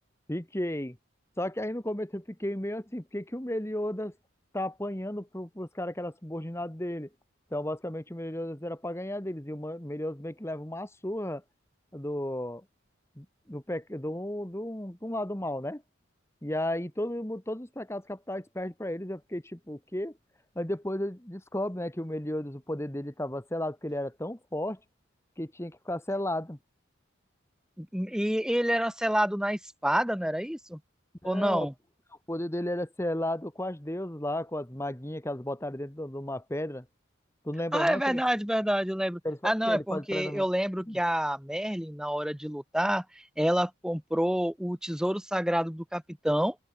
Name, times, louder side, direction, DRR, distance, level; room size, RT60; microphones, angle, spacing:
voice 1, 0.3-1.0 1.4-4.1 4.5-7.1 7.5-11.4 11.9-12.6 13.2-15.8 16.4-20.1 20.5-24.8 25.4-26.6 31.2-31.7 32.3-36.8 37.4-38.2 39.2-40.4 40.9-41.0, left 1 dB, 15° left, 1.6 m, -34 dB
voice 2, 27.8-30.8 31.2-31.7 37.7-43.0 43.4-46.5, equal, 5° right, 1.0 m, -28 dB
open air
head